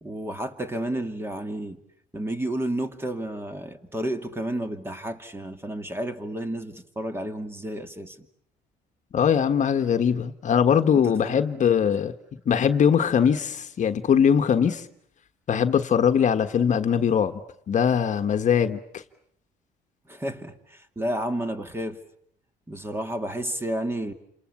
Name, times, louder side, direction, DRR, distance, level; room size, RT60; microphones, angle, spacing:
voice 1, 0.0-1.8 2.1-8.2 11.0-11.4 11.9-12.0 20.1-22.0 22.7-24.1, right 1 dB, 15° right, 2.6 m, -31 dB
voice 2, 9.1-12.1 12.5-14.8 15.5-17.4 17.7-19.0, left 7 dB, 45° left, 1.4 m, -21 dB
29.0 x 27.0 x 7.3 m
cardioid pair, 110°, 17 cm